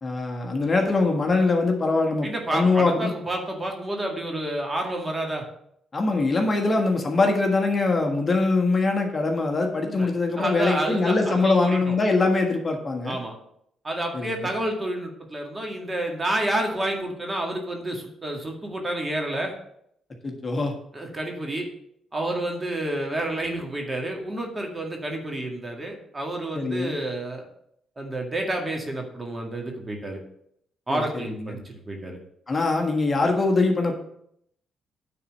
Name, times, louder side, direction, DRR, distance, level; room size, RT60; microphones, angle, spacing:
voice 1, 0.0-3.1 5.9-13.2 14.1-14.5 20.2-20.7 26.5-26.9 30.9-31.5 32.5-33.9, left 3 dB, 30° left, 2 dB, 1.5 m, -23 dB
voice 2, 2.2-5.4 9.8-10.1 10.4-12.0 13.1-13.3 13.8-19.5 20.9-21.7 22.1-27.5 28.0-30.2 30.9-32.2, right 1 dB, 20° right, 1 dB, 2.0 m, -29 dB
9.4 x 4.2 x 6.5 m, 0.73 s
cardioid pair, 90°, 0 cm